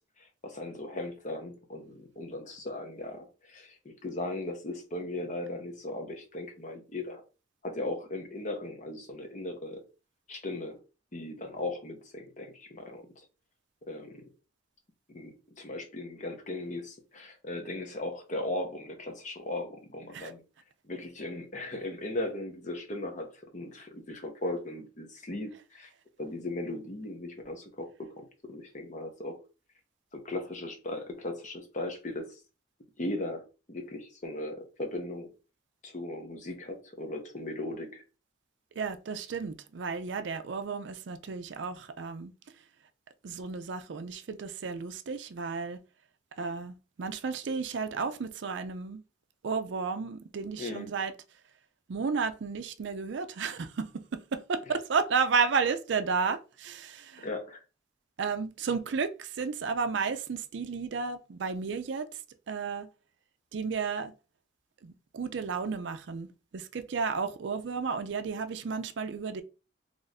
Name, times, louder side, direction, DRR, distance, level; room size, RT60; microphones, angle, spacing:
voice 1, 0.2-7.2 7.6-9.8 10.3-10.8 11.1-13.0 13.9-14.2 15.1-20.4 20.9-25.9 26.2-29.4 30.1-32.4 33.0-35.3 35.8-38.0 50.6-50.9 54.7-54.8 57.2-57.6, left 2 dB, 40° left, 0.8 m, -37 dB
voice 2, 38.8-42.3 43.2-45.8 46.4-49.0 49.4-51.1 51.9-57.3 58.2-62.2 62.5-62.9 63.5-64.1 64.8-69.4, right 5 dB, 65° right, 0.4 m, -32 dB
3.1 x 2.5 x 4.0 m
head